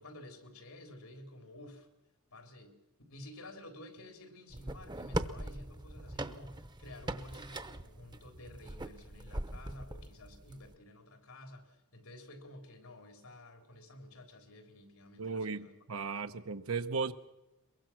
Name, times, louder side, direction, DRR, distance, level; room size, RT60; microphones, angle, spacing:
voice 1, 0.0-1.9 2.3-2.8 3.1-15.8 16.2-16.5, left 1 dB, 90° left, 5 dB, 3.7 m, -52 dB
sound 1, 4.5-10.7, right 1 dB, 20° right, 0.8 m, -41 dB
voice 2, 15.2-17.1, right 4 dB, 85° right, 8 dB, 1.0 m, -36 dB
22.5 x 22.5 x 6.1 m, 0.99 s
head